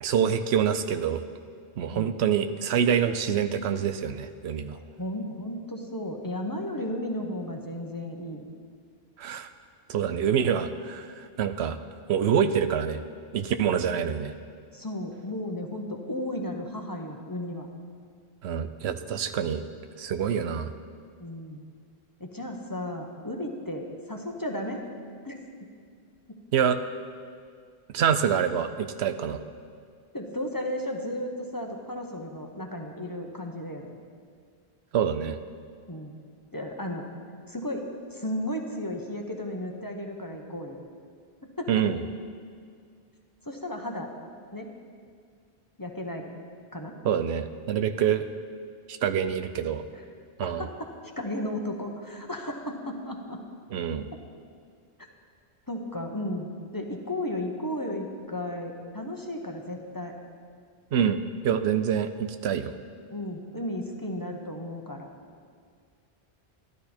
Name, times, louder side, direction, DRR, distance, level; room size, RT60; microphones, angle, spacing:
voice 1, 0.0-1.2 1.8-4.8 9.2-9.5 9.9-11.8 12.1-13.0 13.3-14.3 18.4-19.6 20.0-20.7 26.5-26.8 27.9-29.4 34.9-35.4 41.7-42.0 47.0-48.3 48.9-49.8 50.4-50.7 53.7-54.1 60.9-62.7, right 8 dB, 85° right, 9 dB, 0.9 m, -26 dB
voice 2, 4.7-8.5 14.7-17.7 21.2-21.7 22.2-24.8 25.2-25.4 26.3-26.4 30.1-33.9 35.9-36.1 36.5-37.1 37.5-40.8 41.4-41.8 43.4-44.1 44.5-44.7 45.8-46.3 46.7-47.0 49.9-50.0 50.4-53.4 55.7-60.1 63.1-65.1, left 1 dB, 20° left, 2 dB, 0.9 m, -34 dB
12.5 x 12.5 x 4.3 m, 2.1 s
omnidirectional pair, 1.1 m